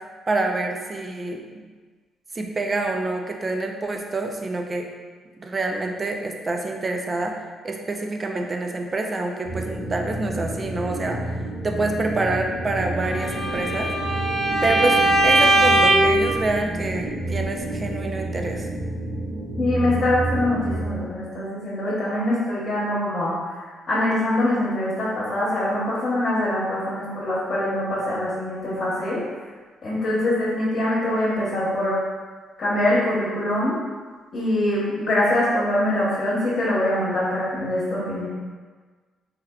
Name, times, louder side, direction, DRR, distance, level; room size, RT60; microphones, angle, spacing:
voice 1, 0.3-1.4 2.3-4.8 5.4-7.3 7.6-11.3 11.6-13.9 14.6-18.7, right 2 dB, 30° right, 3 dB, 0.4 m, -27 dB
sound 1, 9.5-21.0, right 1 dB, 25° left, 1.2 m, -30 dB
Bowed string instrument, 13.2-16.2, right 1 dB, 10° right, 0.8 m, -19 dB
voice 2, 19.6-23.5 23.9-29.2 29.8-32.0 32.6-33.8 34.3-38.3, left 1 dB, 50° left, -8 dB, 1.0 m, -23 dB
3.5 x 3.2 x 2.3 m, 1.4 s
cardioid pair, 90°, 0 cm